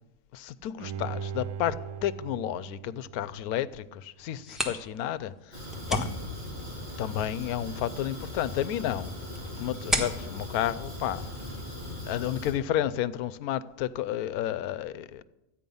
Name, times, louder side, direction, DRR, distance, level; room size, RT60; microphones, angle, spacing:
voice 1, 0.3-6.1 7.0-9.1 9.6-11.5 12.1-15.2, left 11 dB, 80° left, 1.0 m, -31 dB
Bowed string instrument, 0.8-3.9 4.3-4.4, right 7 dB, 90° right, 1.1 m, -39 dB
sound 1, 4.3-11.8, equal, ahead, 1.3 m, -37 dB
Fire, 5.5-12.5, left 1 dB, 40° right, 3.6 m, -39 dB
13.0 x 9.0 x 5.4 m
omnidirectional pair, 1.6 m